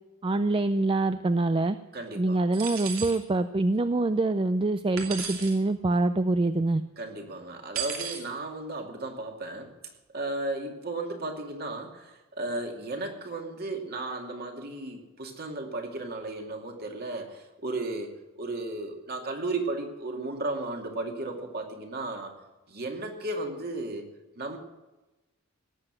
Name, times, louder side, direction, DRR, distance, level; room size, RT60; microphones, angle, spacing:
voice 1, 0.2-1.8 2.2-6.8, right 2 dB, 25° right, 11 dB, 0.4 m, -25 dB
voice 2, 1.9-2.4 7.0-9.7 10.1-22.3 22.7-24.1 24.4-24.6, right 2 dB, 45° right, 3 dB, 2.4 m, -34 dB
sound 1, 2.5-3.2 5.0-5.6 7.7-8.2, right 7 dB, 80° right, 2.9 m, -34 dB
18.0 x 8.0 x 7.7 m, 1.1 s
head